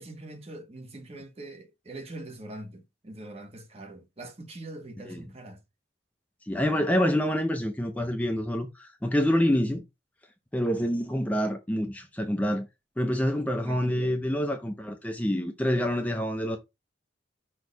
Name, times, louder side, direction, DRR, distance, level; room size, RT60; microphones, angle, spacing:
voice 1, 0.0-5.6 10.7-10.9 13.6-14.2, right 1 dB, 35° right, 1.2 m, -43 dB
voice 2, 6.5-9.8 10.5-12.7 13.0-16.6, equal, 10° left, 0.7 m, -27 dB
6.2 x 3.1 x 5.3 m
head